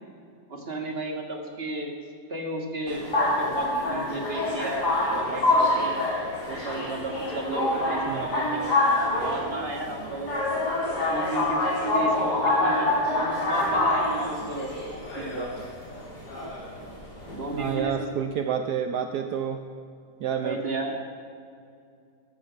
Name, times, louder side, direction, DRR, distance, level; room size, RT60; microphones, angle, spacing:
voice 1, 0.5-1.9 2.3-5.9 6.5-10.4 11.1-14.7 15.2-15.5 17.3-17.9 18.2-18.3 20.4-21.0, right 2 dB, 35° right, 2 dB, 2.1 m, -33 dB
sound 1, 2.9-17.7, left 2 dB, 65° left, 4.2 m, -26 dB
voice 2, 17.5-19.6 20.2-20.6, right 8 dB, 70° right, 7 dB, 1.2 m, -29 dB
14.5 x 13.0 x 5.8 m, 2.4 s
omnidirectional pair, 1.9 m